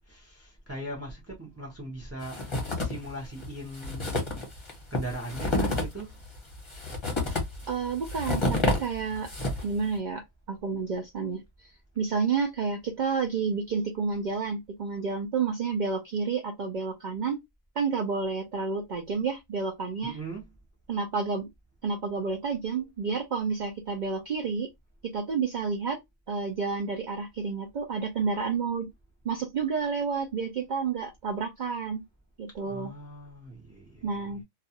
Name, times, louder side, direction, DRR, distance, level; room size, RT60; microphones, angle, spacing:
voice 1, 0.1-4.2 4.9-6.2 20.0-20.4 32.6-34.3, right 1 dB, 15° right, 0.5 m, -40 dB
sound 1, 2.2-3.1 3.4-3.5 3.7-9.8, left 2 dB, 25° left, 0.7 m, -29 dB
voice 2, 7.7-9.3 9.6-17.4 17.8-20.2 20.9-21.5 21.8-24.7 25.0-26.0 26.3-28.9 29.2-32.0 32.4-32.9 34.0-34.4, right 5 dB, 70° right, 0.4 m, -30 dB
2.4 x 2.4 x 2.7 m
omnidirectional pair, 1.4 m